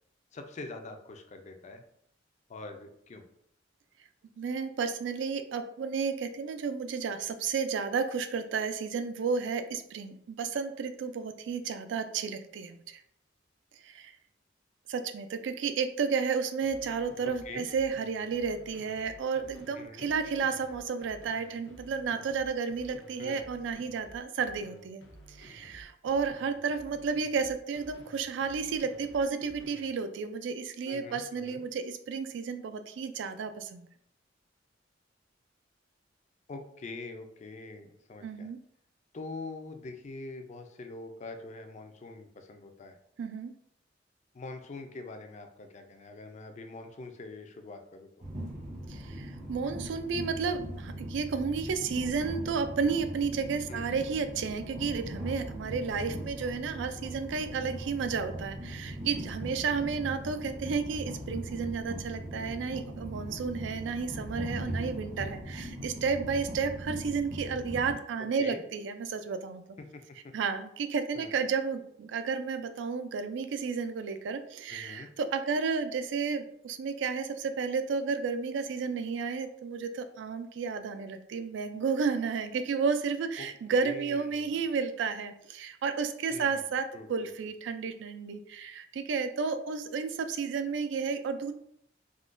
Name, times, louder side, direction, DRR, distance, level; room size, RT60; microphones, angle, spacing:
voice 1, 0.3-1.8 2.5-3.3 17.4-17.6 19.8-20.1 23.2-23.4 30.9-31.6 36.5-38.5 39.1-42.9 44.3-48.2 53.7-53.9 68.2-68.6 69.9-70.0 71.1-71.3 74.7-75.1 83.4-84.6 86.3-86.7 86.9-87.3, left 3 dB, 40° left, 5 dB, 0.4 m, -44 dB
voice 2, 4.4-13.0 13.8-14.1 14.9-25.0 25.3-33.9 38.2-38.6 43.2-43.5 48.9-69.8 70.3-91.5, right 5 dB, 70° right, 9 dB, 0.3 m, -32 dB
sound 1, 16.6-29.9, equal, 85° left, 0.6 m, -53 dB
Train, 48.2-67.9, equal, 45° right, 0.8 m, -40 dB
3.6 x 2.2 x 2.5 m, 0.69 s
head